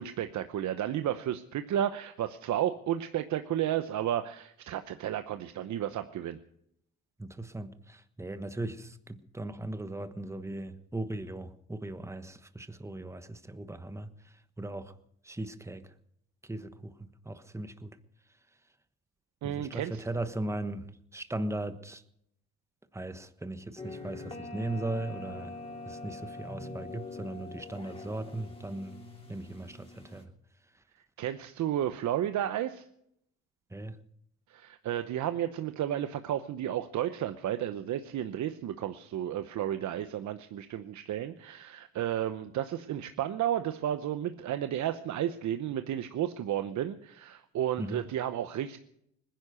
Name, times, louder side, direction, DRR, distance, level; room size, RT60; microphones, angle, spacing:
voice 1, 0.0-6.4 19.4-20.0 31.2-32.8 34.5-48.8, right 11 dB, 70° right, 0.9 m, -32 dB
voice 2, 7.2-14.9 15.2-15.9 16.4-18.0 19.4-20.9 21.1-22.0 22.9-25.6 25.8-29.0 29.3-30.3 33.7-34.0 47.8-48.1, right 2 dB, 10° right, 1.2 m, -38 dB
sound 1, 23.8-30.2, left 2 dB, 20° left, 3.4 m, -44 dB
20.0 x 10.5 x 6.5 m
cardioid pair, 90°, 30 cm